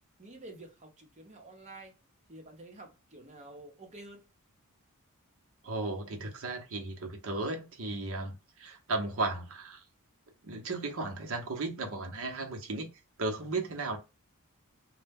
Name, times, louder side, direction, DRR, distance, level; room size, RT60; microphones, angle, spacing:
voice 1, 0.2-2.0 2.3-4.3, right 2 dB, 30° right, 0.8 m, -49 dB
voice 2, 5.6-9.8 10.4-12.9 13.2-14.0, right 2 dB, 65° right, 0.7 m, -35 dB
2.1 x 2.1 x 3.4 m
head